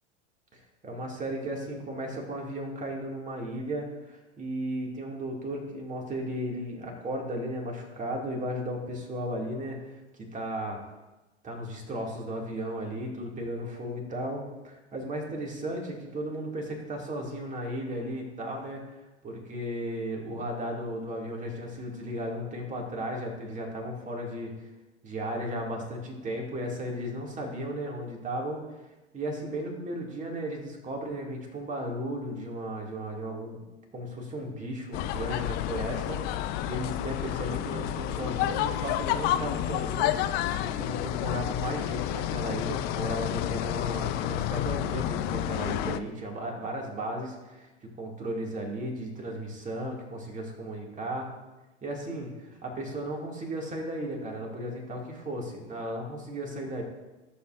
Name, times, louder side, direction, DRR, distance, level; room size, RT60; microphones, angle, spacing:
voice 1, 0.8-10.0 10.3-10.8 11.4-18.8 19.2-24.5 25.0-28.6 29.1-33.6 33.9-47.7 48.0-51.3 51.8-52.3 52.6-56.8, right 1 dB, 20° right, 0 dB, 2.1 m, -35 dB
sound 1, 34.9-46.0, left 12 dB, 30° left, 0.4 m, -30 dB
14.0 x 7.0 x 2.5 m, 1.1 s
figure-of-eight pair, 90°, 35 cm